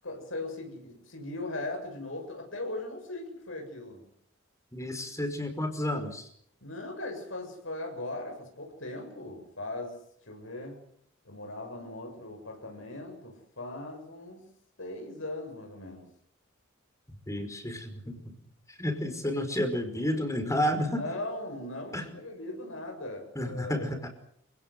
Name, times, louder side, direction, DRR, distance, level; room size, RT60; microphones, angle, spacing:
voice 1, 0.0-4.1 6.6-10.0 10.3-10.9 11.2-14.4 14.8-16.1 20.8-24.0, left 2 dB, 80° left, 3 dB, 7.7 m, -39 dB
voice 2, 4.7-6.2 17.3-18.2 18.8-21.0 21.9-22.0 23.4-24.1, left 1 dB, 15° left, 6 dB, 5.2 m, -31 dB
28.5 x 18.5 x 8.0 m, 0.70 s
head